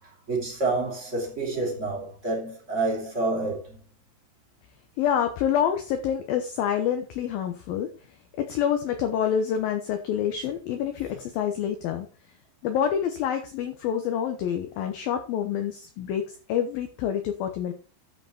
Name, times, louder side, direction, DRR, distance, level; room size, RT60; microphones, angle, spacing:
voice 1, 0.3-3.8, right 3 dB, 15° right, 3.8 m, -28 dB
voice 2, 5.0-7.9 8.5-12.1 12.6-17.7, left 9 dB, 70° left, 2.4 m, -27 dB
13.0 x 5.9 x 4.4 m
omnidirectional pair, 5.2 m